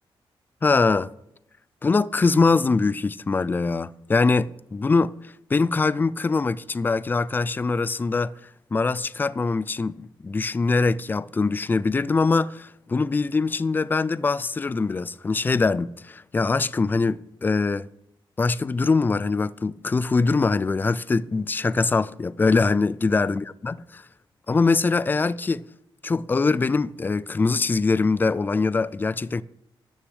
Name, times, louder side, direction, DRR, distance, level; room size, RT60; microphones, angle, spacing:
voice 1, 0.6-1.1 1.8-5.1 5.5-8.3 8.7-17.9 18.4-24.0 24.5-25.6 26.0-29.4, left 4 dB, 20° left, 0.3 m, -23 dB
13.0 x 6.5 x 7.7 m
wide cardioid pair, 150°, 9 cm